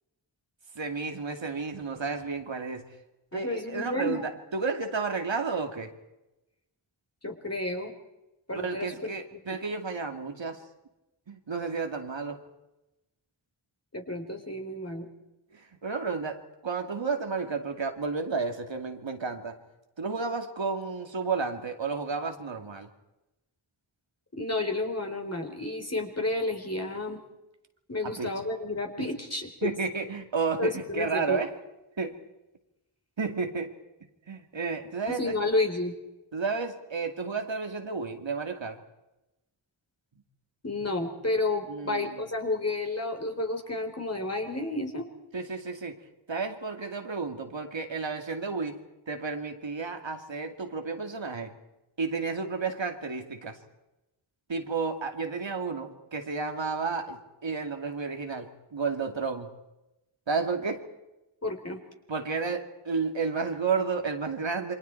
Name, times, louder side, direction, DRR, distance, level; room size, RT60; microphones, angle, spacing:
voice 1, 0.7-3.0 3.3-5.9 8.5-10.6 11.3-12.4 15.5-19.5 20.0-22.9 28.0-28.3 29.0-29.1 29.6-31.5 32.0-32.2 33.2-33.7 34.3-35.3 36.3-38.8 41.7-42.2 45.3-48.8 49.1-51.5 52.0-53.6 54.5-59.5 60.3-60.8 62.1-64.7, right 4 dB, 65° right, 4 dB, 2.4 m, -32 dB
voice 2, 3.3-4.3 7.2-7.9 8.5-9.4 13.9-15.1 24.3-27.2 27.9-29.7 30.6-31.4 35.1-35.9 40.6-45.1 61.4-61.8, left 2 dB, 30° left, 3 dB, 3.9 m, -31 dB
28.5 x 24.5 x 4.6 m, 0.98 s
wide cardioid pair, 85°, 48 cm